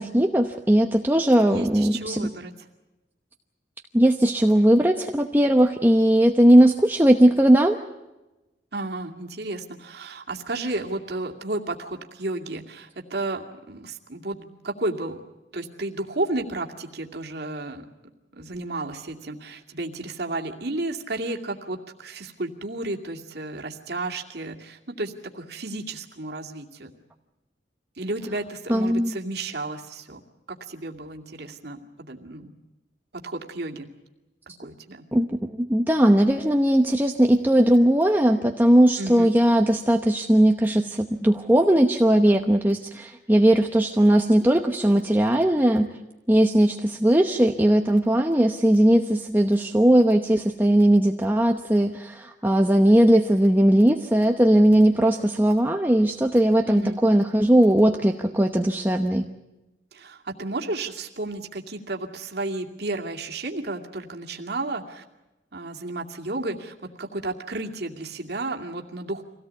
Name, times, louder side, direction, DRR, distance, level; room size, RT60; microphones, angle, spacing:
voice 1, 0.0-2.3 3.9-7.8 28.7-29.2 35.1-45.9 46.3-59.3, right 1 dB, 10° right, 3 dB, 0.9 m, -19 dB
voice 2, 1.4-2.7 8.7-15.2 15.5-17.9 18.4-26.9 28.0-30.2 30.5-32.5 33.1-33.9 34.6-35.0 39.0-39.3 56.7-57.0 59.9-65.0 65.5-69.2, right 2 dB, 60° right, 2 dB, 2.4 m, -32 dB
25.5 x 17.5 x 8.3 m, 1.0 s
head